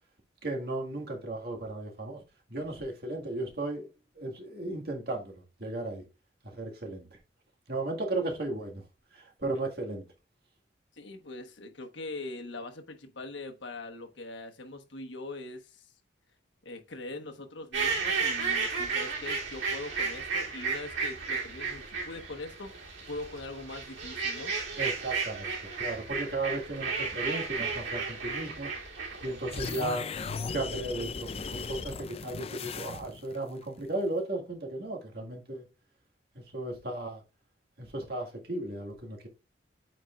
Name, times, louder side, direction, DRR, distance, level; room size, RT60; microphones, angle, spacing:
voice 1, 0.4-2.2 2.5-3.9 4.2-6.0 6.5-7.1 7.7-8.8 9.1-10.1 24.8-28.7 29.2-30.1 30.5-35.6 36.5-37.2 37.8-39.3, right 2 dB, 55° right, 1.9 m, -35 dB
voice 2, 10.9-15.9 16.6-24.6, left 2 dB, 70° left, 1.2 m, -42 dB
sound 1, 17.7-29.8, right 5 dB, 75° right, 3.0 m, -33 dB
sound 2, 29.5-33.4, left 4 dB, 30° left, 0.4 m, -37 dB
8.9 x 4.5 x 2.4 m
head